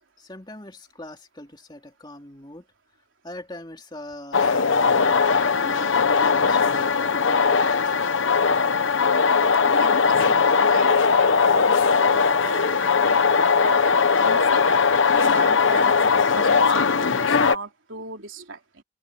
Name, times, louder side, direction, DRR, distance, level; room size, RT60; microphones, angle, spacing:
voice 1, 0.2-2.7 3.2-8.1, left 1 dB, 20° left, 2.9 m, -42 dB
sound 1, 4.3-17.5, left 5 dB, 65° left, 1.0 m, -19 dB
voice 2, 9.6-13.2 13.6-13.8 14.2-14.7 15.1-18.8, right 3 dB, 65° right, 3.6 m, -37 dB
head